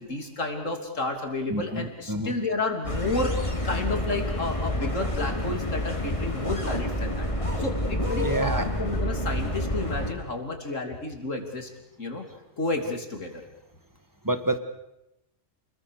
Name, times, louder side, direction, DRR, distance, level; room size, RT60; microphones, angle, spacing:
voice 1, 0.0-7.3 7.6-11.7 12.0-12.3 12.6-13.4, left 2 dB, 75° left, 4 dB, 3.7 m, -31 dB
voice 2, 1.5-2.3 8.2-8.7 14.2-14.6, right 1 dB, 15° right, 9 dB, 1.8 m, -28 dB
sound 1, 2.8-10.1, left 1 dB, 25° left, 3.0 m, -28 dB
29.0 x 21.0 x 6.7 m, 0.88 s
omnidirectional pair, 1.3 m